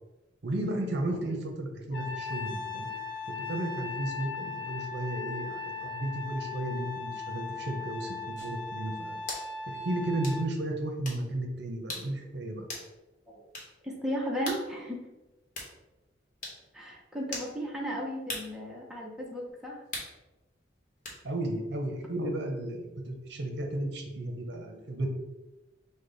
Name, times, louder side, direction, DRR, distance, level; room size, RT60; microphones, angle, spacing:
voice 1, 0.4-2.9 3.3-9.2 9.7-12.7 21.2-25.1, right 1 dB, 60° right, 2 dB, 0.7 m, -34 dB
Trumpet, 1.9-10.5, left 4 dB, 60° left, 0.6 m, -38 dB
sound 1, 8.4-8.5 9.3-9.5 10.2-10.4 11.0-11.2 11.9-12.1 12.7-12.9 13.5-13.7 14.5-14.7 15.5-15.7 16.4-16.6 17.3-17.5 18.3-18.5 19.9-20.1 21.0-21.2, left 2 dB, 45° left, 1.0 m, -38 dB
voice 2, 13.8-15.0 16.7-19.8, equal, 5° right, -3 dB, 0.6 m, -35 dB
5.1 x 2.1 x 3.9 m, 1.1 s
head